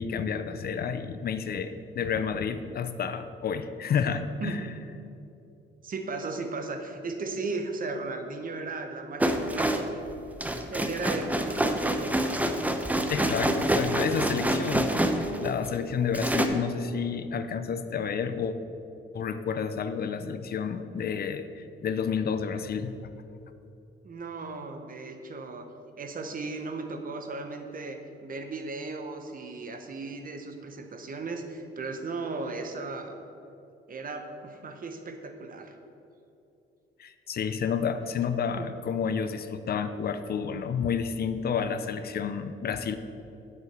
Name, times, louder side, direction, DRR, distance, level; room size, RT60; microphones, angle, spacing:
voice 1, 0.0-4.6 13.1-18.6 19.1-23.1 37.0-43.0, left 6 dB, 50° left, 10 dB, 0.6 m, -30 dB
voice 2, 5.8-9.7 10.7-12.1 24.0-25.7 26.0-33.2 33.9-35.7 38.6-38.7, right 3 dB, 45° right, 6 dB, 1.2 m, -36 dB
sound 1, 9.2-15.8 16.1-16.5, right 1 dB, 5° right, 0.7 m, -27 dB
8.1 x 7.5 x 6.1 m, 2.8 s
cardioid pair, 90°, 20 cm